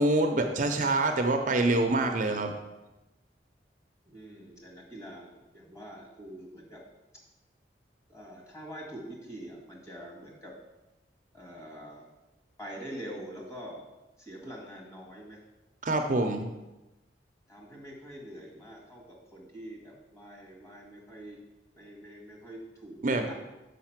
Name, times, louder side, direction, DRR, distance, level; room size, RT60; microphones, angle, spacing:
voice 1, 0.0-2.5 15.8-16.5 23.0-23.3, right 2 dB, 45° right, 5 dB, 0.6 m, -26 dB
voice 2, 4.1-6.8 8.1-10.5 11.3-12.1 12.6-13.8 14.2-15.4 17.5-21.4 21.7-23.3, equal, 15° left, -2 dB, 1.9 m, -45 dB
6.4 x 5.3 x 5.9 m, 1.0 s
head